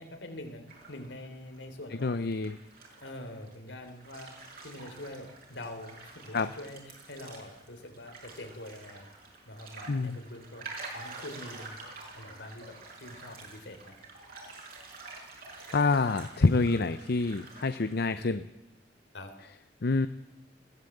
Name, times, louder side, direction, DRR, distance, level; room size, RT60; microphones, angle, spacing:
voice 1, 0.0-2.3 3.0-6.8 7.1-9.1 9.5-10.7 10.9-11.8 12.1-14.0 19.1-19.3, left 1 dB, 80° left, 6 dB, 3.5 m, -44 dB
sound 1, 0.7-1.6 1.9-18.3, right 3 dB, 55° right, 6.0 m, -48 dB
voice 2, 2.0-2.6 6.3-6.5 9.9-10.2 15.7-18.4 19.8-20.1, left 3 dB, 60° left, 12 dB, 0.7 m, -27 dB
21.0 x 15.5 x 7.9 m, 0.92 s
head